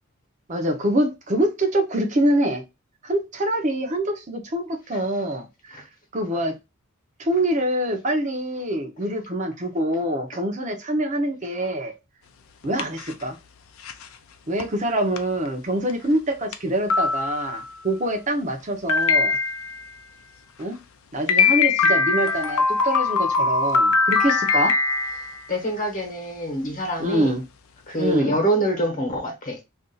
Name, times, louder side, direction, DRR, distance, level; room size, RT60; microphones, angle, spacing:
voice 1, 0.5-2.6 3.0-5.8 6.1-6.5 7.2-11.9 12.6-13.4 14.5-19.4 20.6-20.8 21.1-24.7 27.0-27.4 28.0-28.3, right 1 dB, 35° right, 0.6 m, -25 dB
sound 1, 12.6-13.2 13.9-14.0 14.6-14.7 15.2-15.3 15.9-16.0 16.5-16.6 16.9-17.7 18.9-19.8 21.3-25.5, left 4 dB, 75° left, 0.5 m, -21 dB
voice 2, 25.5-27.4 27.9-29.6, right 1 dB, 40° left, 1.0 m, -25 dB
2.5 x 2.4 x 3.8 m
head